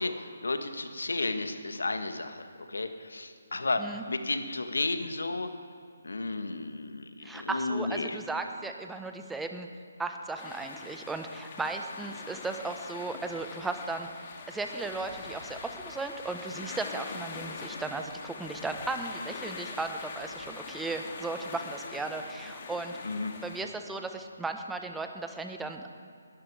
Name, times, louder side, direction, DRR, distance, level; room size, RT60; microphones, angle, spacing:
voice 1, 0.0-5.5 6.0-8.2 23.0-23.3, left 3 dB, 75° left, 7 dB, 1.7 m, -33 dB
voice 2, 7.2-9.7 10.0-14.2 14.5-23.0 23.4-25.9, right 3 dB, 5° right, 5 dB, 1.1 m, -36 dB
sound 1, 10.4-23.6, left 4 dB, 35° left, 2.1 m, -43 dB
20.5 x 12.5 x 5.0 m, 2.3 s
figure-of-eight pair, 145°, 0 cm